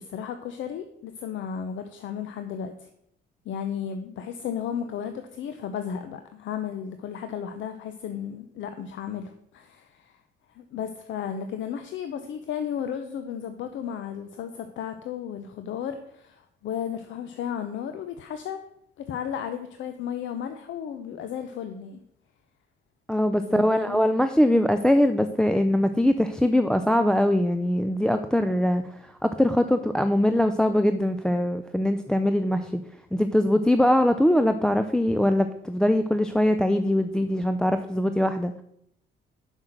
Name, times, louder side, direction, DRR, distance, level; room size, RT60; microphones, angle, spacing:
voice 1, 0.0-2.9 3.5-10.2 10.5-18.6 19.0-22.0 23.5-24.0, left 8 dB, 75° left, 8 dB, 0.7 m, -34 dB
voice 2, 23.1-32.8 33.1-38.5, left 1 dB, 5° left, 8 dB, 0.4 m, -22 dB
6.3 x 5.7 x 6.4 m, 0.75 s
cardioid pair, 90°, 20 cm